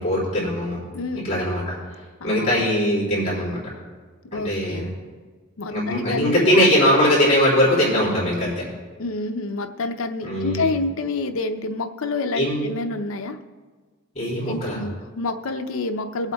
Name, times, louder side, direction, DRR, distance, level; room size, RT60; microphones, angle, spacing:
voice 1, 0.0-0.8 1.2-1.8 2.2-3.6 4.3-4.9 5.7-8.6 10.2-10.7 12.3-12.6 14.2-14.8, equal, 35° left, -7 dB, 3.5 m, -21 dB
voice 2, 0.9-1.3 2.2-2.6 4.3-4.9 5.6-6.7 9.0-13.4 14.4-16.3, left 3 dB, 75° left, 6 dB, 0.6 m, -28 dB
23.0 x 8.1 x 2.3 m, 1.4 s
head